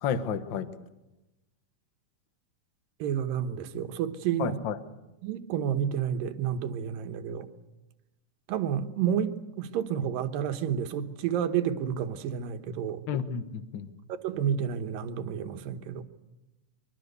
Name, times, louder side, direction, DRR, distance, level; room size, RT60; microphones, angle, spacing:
voice 1, 0.0-0.7 4.4-4.8 13.1-13.9, left 8 dB, 75° left, 11 dB, 1.0 m, -31 dB
voice 2, 3.0-4.6 5.2-7.5 8.5-13.0 14.1-16.0, right 8 dB, 85° right, 8 dB, 2.8 m, -30 dB
24.0 x 24.0 x 6.8 m, 1.0 s
omnidirectional pair, 3.9 m